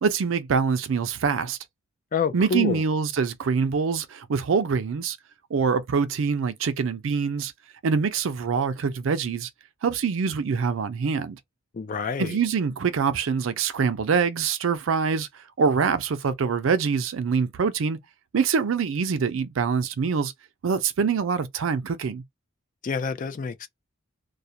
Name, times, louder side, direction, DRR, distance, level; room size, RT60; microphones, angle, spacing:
voice 1, 0.0-1.6 2.3-5.2 5.5-7.5 7.8-9.5 9.8-11.4 12.2-15.3 15.6-18.0 18.3-20.3 20.6-22.2, right 5 dB, 75° right, 0.4 m, -24 dB
voice 2, 2.1-2.8 11.7-12.4 22.8-23.7, left 5 dB, 40° left, 0.3 m, -27 dB
2.4 x 2.1 x 2.7 m
head